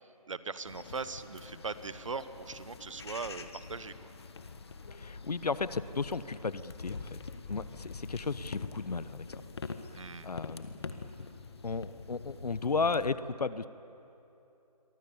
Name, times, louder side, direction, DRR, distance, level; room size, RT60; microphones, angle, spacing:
voice 1, 0.0-4.1 9.9-10.3, right 4 dB, 50° right, 13 dB, 1.2 m, -40 dB
sound 1, 0.7-13.1, left 4 dB, 40° left, 1.4 m, -45 dB
voice 2, 5.0-7.2 7.5-9.4 10.2-10.7 11.6-13.7, left 4 dB, 75° left, 15 dB, 1.0 m, -34 dB
27.5 x 23.5 x 7.1 m, 2.9 s
figure-of-eight pair, 170°, 20 cm